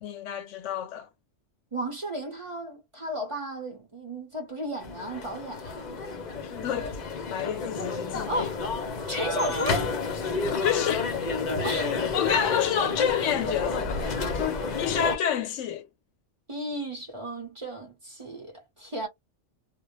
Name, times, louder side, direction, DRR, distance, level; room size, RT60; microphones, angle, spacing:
voice 1, 0.0-1.1 6.4-7.0 7.3-8.6 10.5-11.1 12.1-15.9, left 9 dB, 85° left, 0.9 m, -29 dB
voice 2, 1.7-6.0 8.2-8.6 9.1-9.9 11.6-12.0 16.5-19.1, right 1 dB, 30° right, 0.8 m, -34 dB
sound 1, 4.8-15.2, left 4 dB, 45° left, 0.6 m, -30 dB
2.2 x 2.1 x 3.0 m
omnidirectional pair, 1.2 m